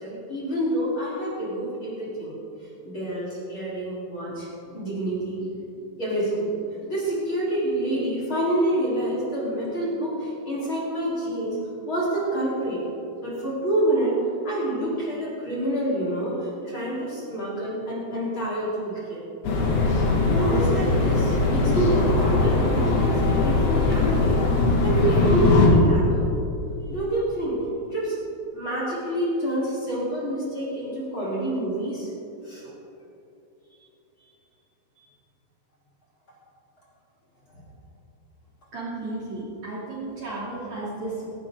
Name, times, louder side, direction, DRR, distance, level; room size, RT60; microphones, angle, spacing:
voice 1, 0.0-2.3 2.8-5.5 5.7-6.5 6.8-11.6 11.9-12.8 13.2-14.1 14.4-19.2 20.3-24.4 24.8-26.3 26.9-27.6 27.9-28.1 28.5-32.1 32.4-32.7 35.0-35.1, right 1 dB, 30° left, -7 dB, 4.1 m, -27 dB
sound 1, 19.4-25.7, left 3 dB, 65° left, 4.0 m, -21 dB
voice 2, 38.7-41.3, right 2 dB, 45° right, -7 dB, 3.5 m, -33 dB
17.5 x 17.5 x 3.8 m, 2.9 s
omnidirectional pair, 5.1 m